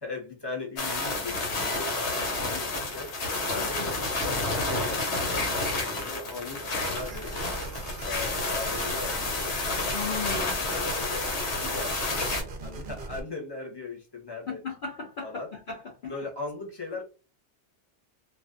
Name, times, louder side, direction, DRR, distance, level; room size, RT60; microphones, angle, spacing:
voice 1, 0.0-3.1 3.5-7.3 8.0-11.3 11.6-12.2 12.6-14.6 15.0-15.5 16.1-17.0, left 3 dB, 25° left, 0.8 m, -39 dB
sound 1, 0.8-12.4, left 2 dB, 75° left, 1.1 m, -30 dB
voice 2, 3.6-3.9 9.9-10.6 14.5-15.3 15.7-16.1, left 5 dB, 60° left, 0.6 m, -36 dB
sound 2, 7.0-13.2, right 2 dB, 55° right, 0.7 m, -39 dB
2.4 x 2.3 x 2.4 m
omnidirectional pair, 1.2 m